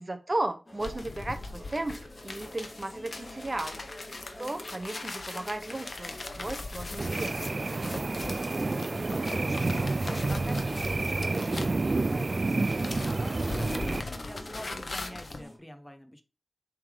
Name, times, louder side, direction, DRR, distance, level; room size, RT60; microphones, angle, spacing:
voice 1, 0.0-2.0 2.2-3.8 4.4-7.5, right 2 dB, 30° right, 7 dB, 0.7 m, -35 dB
sound 1, 0.7-15.6, left 1 dB, 25° left, 2.3 m, -48 dB
sound 2, 0.8-12.2 12.5-15.4, left 3 dB, 55° left, 0.9 m, -40 dB
voice 2, 4.1-4.5 8.2-16.2, equal, 10° left, 7 dB, 0.9 m, -46 dB
sound 3, 7.0-14.0, right 3 dB, 45° right, 0.3 m, -29 dB
7.1 x 3.5 x 4.9 m, 0.32 s
wide cardioid pair, 95°, 0 cm